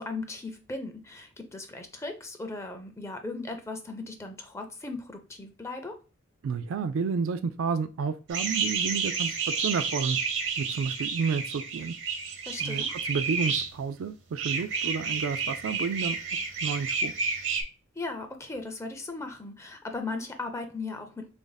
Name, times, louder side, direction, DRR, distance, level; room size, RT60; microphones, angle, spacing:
voice 1, 0.0-6.0 12.4-12.9 18.0-21.3, left 3 dB, 15° left, 0.4 m, -37 dB
voice 2, 6.4-10.2 10.6-11.9 12.6-16.2 16.6-17.1, right 5 dB, 80° right, 0.3 m, -31 dB
sound 1, 8.3-13.7 14.4-17.6, right 5 dB, 65° right, 0.8 m, -30 dB
3.4 x 2.6 x 3.8 m
head